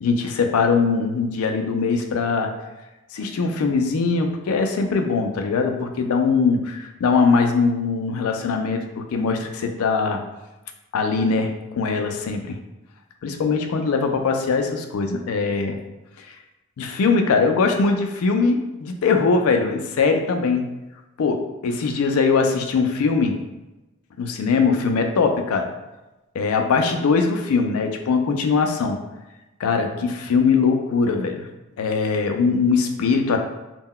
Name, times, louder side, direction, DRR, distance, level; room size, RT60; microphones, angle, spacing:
voice 1, 0.0-2.5 3.1-8.8 9.1-10.2 10.9-12.6 13.2-15.8 16.2-16.3 16.8-20.6 21.2-23.4 24.2-25.7 26.3-29.0 29.6-31.5 31.8-33.4, left 4 dB, 85° left, 5 dB, 0.4 m, -21 dB
2.2 x 2.1 x 3.6 m, 1.0 s
head